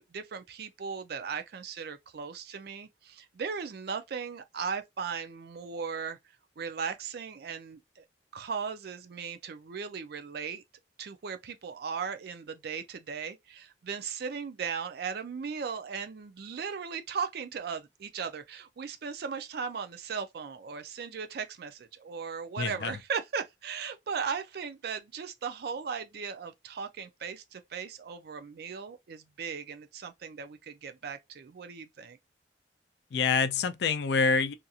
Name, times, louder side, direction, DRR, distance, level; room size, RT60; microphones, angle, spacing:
voice 1, 0.0-6.2 6.6-8.0 8.3-10.6 11.0-32.2, right 6 dB, 55° right, 0.4 m, -37 dB
voice 2, 22.6-23.0 33.1-34.5, left 5 dB, 60° left, 0.3 m, -26 dB
2.8 x 2.5 x 2.3 m
head